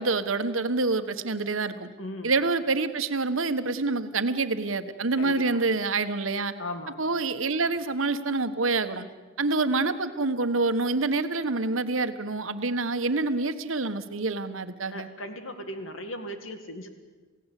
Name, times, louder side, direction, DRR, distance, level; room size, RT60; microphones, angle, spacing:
voice 1, 0.0-1.9 2.2-6.5 7.0-9.1 9.4-15.1, right 3 dB, 80° right, 10 dB, 1.4 m, -27 dB
voice 2, 2.0-2.3 5.1-5.6 6.6-7.0 14.9-16.9, left 1 dB, 80° left, 7 dB, 2.2 m, -37 dB
28.0 x 17.0 x 8.4 m, 1.3 s
head